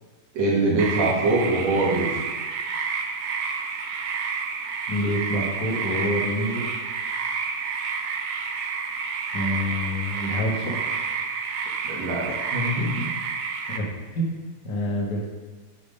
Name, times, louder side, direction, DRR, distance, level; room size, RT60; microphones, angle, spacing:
voice 1, 0.3-2.1 11.8-12.9, right 2 dB, 60° right, -5 dB, 2.7 m, -23 dB
sound 1, 0.8-13.8, right 5 dB, 85° right, 1.4 m, -30 dB
voice 2, 4.9-6.7 9.3-10.8 12.9-13.1 13.7-14.3 14.6-15.2, left 1 dB, 55° left, -1 dB, 1.1 m, -27 dB
10.0 x 3.6 x 5.2 m, 1.3 s
omnidirectional pair, 3.8 m